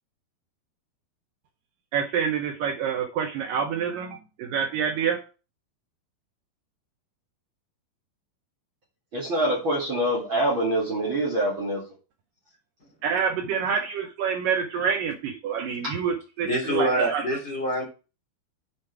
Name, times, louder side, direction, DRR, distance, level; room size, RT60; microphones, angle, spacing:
voice 1, 1.9-5.2 13.0-17.3, right 7 dB, 70° right, 4 dB, 2.3 m, -27 dB
voice 2, 9.1-11.8 15.8-15.9, right 1 dB, 40° right, -2 dB, 2.2 m, -25 dB
voice 3, 16.4-17.8, right 1 dB, 30° left, -3 dB, 3.0 m, -25 dB
8.7 x 5.1 x 4.7 m, 0.33 s
omnidirectional pair, 4.4 m